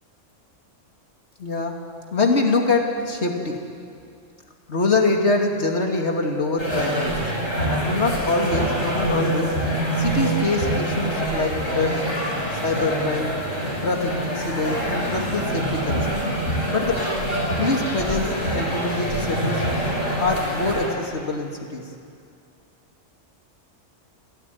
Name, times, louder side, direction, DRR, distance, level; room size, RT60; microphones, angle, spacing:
voice 1, 1.4-3.7 4.7-7.3 7.9-9.6 10.0-12.1 12.6-13.4 13.8-16.2 16.7-17.1 17.6-19.6 20.2-21.9, left 3 dB, 60° left, 2 dB, 2.8 m, -24 dB
sound 1, 6.6-20.9, right 1 dB, 75° left, 7.0 m, -25 dB
27.5 x 17.5 x 9.4 m, 2.4 s
omnidirectional pair, 1.3 m